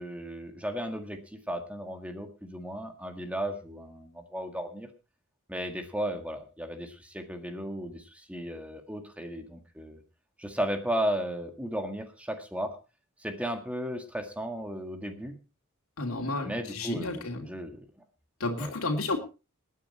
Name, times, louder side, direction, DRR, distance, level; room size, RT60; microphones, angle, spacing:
voice 1, 0.0-4.9 5.5-10.0 10.4-12.8 13.2-15.3 16.4-17.9 18.6-18.7, equal, 5° right, 6 dB, 1.8 m, -35 dB
voice 2, 16.0-17.5 18.4-19.2, left 2 dB, 90° left, 1 dB, 2.9 m, -31 dB
20.0 x 9.6 x 4.3 m, 0.32 s
head